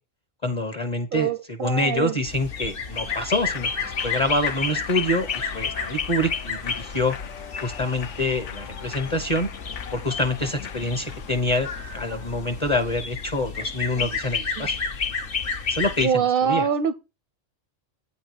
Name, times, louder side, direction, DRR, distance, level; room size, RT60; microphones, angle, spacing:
voice 1, 0.4-1.3 1.6-7.2 7.6-9.5 9.9-14.8 15.7-16.7, left 1 dB, 25° left, 0.9 m, -26 dB
voice 2, 1.1-2.2 13.9-14.1 14.6-14.7 16.0-16.9, right 7 dB, 60° right, 0.6 m, -24 dB
sound 1, 2.3-16.1, left 5 dB, 50° left, 1.1 m, -31 dB
Human voice / Clapping / Cheering, 2.9-12.6, left 8 dB, 85° left, 1.1 m, -40 dB
9.0 x 4.2 x 6.3 m
omnidirectional pair, 1.2 m